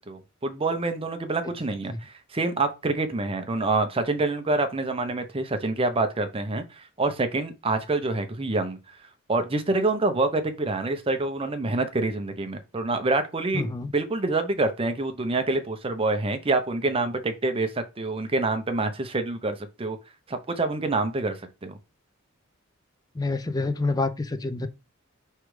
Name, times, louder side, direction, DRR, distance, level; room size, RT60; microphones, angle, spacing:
voice 1, 0.1-8.8 9.3-13.7 13.9-20.0 20.3-21.8, right 2 dB, 25° right, 0.6 m, -26 dB
voice 2, 13.5-13.9 23.2-24.7, left 3 dB, 20° left, 0.4 m, -27 dB
4.9 x 3.2 x 3.1 m
head